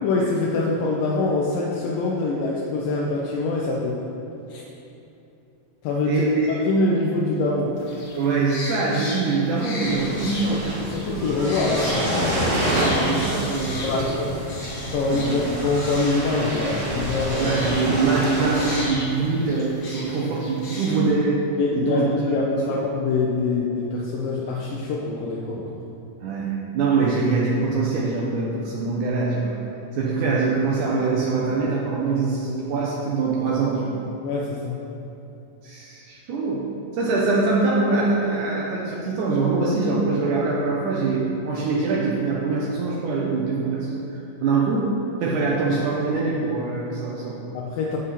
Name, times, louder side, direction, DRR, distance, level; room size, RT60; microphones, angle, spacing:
voice 1, 0.0-4.0 4.5-4.6 5.8-6.3 6.6-7.8 10.1-10.2 10.5-12.1 13.8-14.4 14.9-17.5 21.6-25.8 34.2-34.8 47.5-48.0, left 3 dB, 80° left, -4 dB, 2.5 m, -24 dB
voice 2, 6.1-6.5 8.2-10.6 12.6-14.1 15.2-15.4 17.4-21.5 21.7-22.2 22.5-22.6 26.2-29.5 30.0-34.0 35.6-36.7 36.9-44.9 45.2-47.4, right 3 dB, 70° right, -4 dB, 2.3 m, -23 dB
sound 1, 7.8-21.0, left 1 dB, 60° left, 1.0 m, -36 dB
sound 2, 9.8-18.9, equal, 45° right, 1.0 m, -28 dB
15.0 x 5.4 x 4.2 m, 2.8 s
omnidirectional pair, 3.9 m